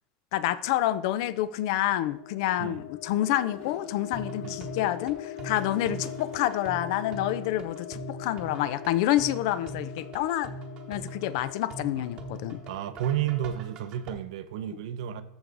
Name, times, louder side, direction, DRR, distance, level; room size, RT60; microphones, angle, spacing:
voice 1, 0.3-10.5 10.9-12.6, left 13 dB, 55° left, 0.4 m, -28 dB
sound 1, 1.7-13.6, left 11 dB, 80° left, 0.8 m, -42 dB
Gurgling / Toilet flush, 3.3-7.0, left 4 dB, 40° left, 1.8 m, -52 dB
sound 2, 4.1-14.1, right 3 dB, 25° right, 1.0 m, -42 dB
voice 2, 12.7-15.2, right 11 dB, 70° right, 0.7 m, -32 dB
13.5 x 4.8 x 3.9 m
supercardioid pair, 175°, 3 cm